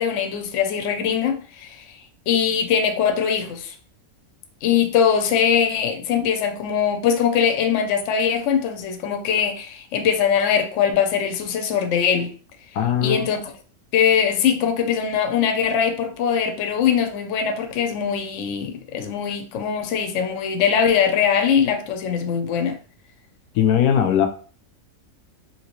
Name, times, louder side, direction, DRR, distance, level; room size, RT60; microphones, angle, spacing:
voice 1, 0.0-1.8 2.3-3.7 4.6-12.3 13.0-13.4 13.9-22.8, left 7 dB, 65° left, 0.8 m, -21 dB
voice 2, 12.7-13.3 23.6-24.3, left 9 dB, 90° left, 1.1 m, -19 dB
2.9 x 2.8 x 2.9 m
omnidirectional pair, 1.6 m